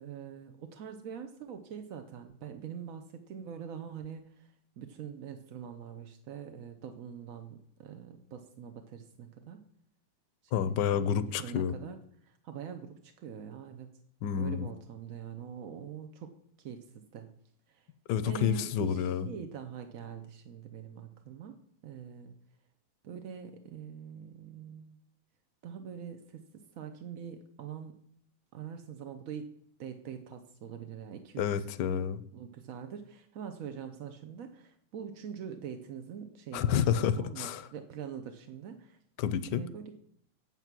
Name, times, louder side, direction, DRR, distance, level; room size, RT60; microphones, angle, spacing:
voice 1, 0.0-9.6 10.4-11.0 11.4-13.9 14.4-16.3 16.6-17.3 17.7-17.9 18.2-21.6 21.8-22.3 23.0-25.0 25.6-27.9 28.5-31.7 32.3-36.6 37.1-39.0 39.5-39.8, right 8 dB, 65° right, 7 dB, 0.9 m, -44 dB
voice 2, 10.5-11.7 14.2-14.7 18.1-19.3 31.4-32.2 36.5-37.6 39.2-39.6, left 8 dB, 70° left, 13 dB, 1.2 m, -29 dB
9.1 x 7.6 x 5.9 m, 0.70 s
omnidirectional pair, 2.2 m